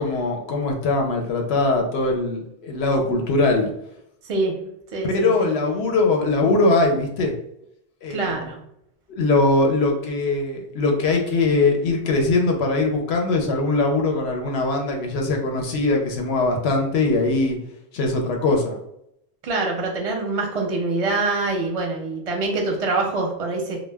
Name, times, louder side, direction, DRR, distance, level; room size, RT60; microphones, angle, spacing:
voice 1, 0.0-3.7 5.0-7.3 8.0-8.5 9.2-17.6 17.9-18.8, left 2 dB, 90° left, 2 dB, 0.9 m, -21 dB
voice 2, 4.9-5.5 8.1-8.6 19.4-23.8, right 3 dB, 45° right, 1 dB, 0.5 m, -25 dB
2.2 x 2.1 x 3.3 m, 0.78 s
omnidirectional pair, 1.0 m